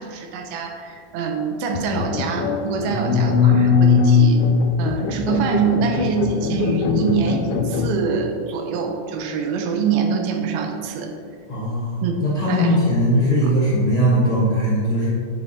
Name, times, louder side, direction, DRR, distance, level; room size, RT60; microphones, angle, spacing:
voice 1, 0.0-4.4 4.8-11.1 12.0-12.1 12.5-12.8 13.4-13.5, right 6 dB, 80° right, 3 dB, 2.6 m, -25 dB
sound 1, 1.7-7.9, left 5 dB, 90° left, 2.6 m, -20 dB
voice 2, 2.8-3.2 11.5-15.1, equal, 60° left, -8 dB, 1.4 m, -20 dB
9.7 x 8.0 x 2.8 m, 2.4 s
omnidirectional pair, 4.4 m